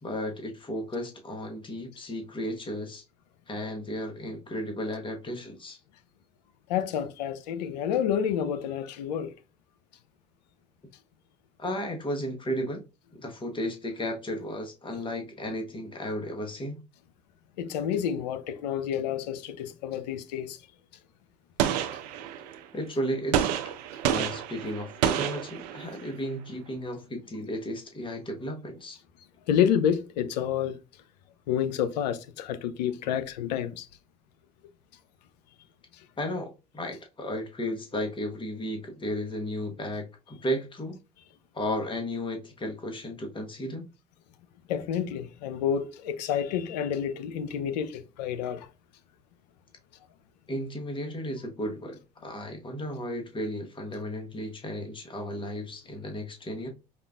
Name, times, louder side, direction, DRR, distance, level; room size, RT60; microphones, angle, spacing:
voice 1, 0.0-3.0 3.5-5.8 11.6-12.8 13.1-16.8 22.7-23.5 24.0-29.0 36.2-41.0 41.5-43.9 50.5-56.7, equal, 25° left, 1.1 m, -34 dB
voice 2, 6.7-9.3 17.6-20.6 29.5-30.8 31.5-33.9 35.9-36.0 44.7-48.7, left 9 dB, 85° left, 0.4 m, -29 dB
Gunshot gunfire, 21.6-22.6 23.3-26.1, right 10 dB, 80° right, 0.5 m, -29 dB
5.0 x 2.3 x 2.3 m
hypercardioid pair, 65°, 21 cm